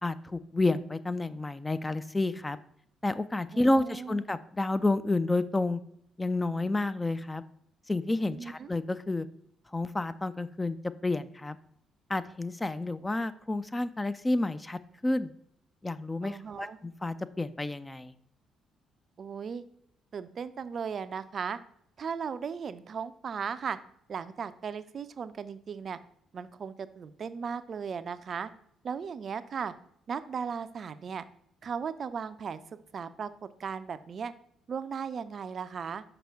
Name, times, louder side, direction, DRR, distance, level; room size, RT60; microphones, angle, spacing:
voice 1, 0.0-2.6 3.0-5.8 6.2-7.4 7.9-9.3 9.7-10.8 11.0-11.6 12.1-15.3 15.8-18.1, left 2 dB, 20° left, 13 dB, 0.4 m, -30 dB
voice 2, 3.5-4.2 8.2-8.7 16.2-16.8 19.2-19.6 20.1-21.6 22.0-23.8 24.1-26.0 26.3-28.5 28.8-29.7 30.1-31.2 31.6-32.6 32.9-34.3 34.7-36.0, right 6 dB, 50° right, 13 dB, 0.4 m, -36 dB
5.8 x 5.3 x 3.4 m, 0.70 s
figure-of-eight pair, 45°, 0 cm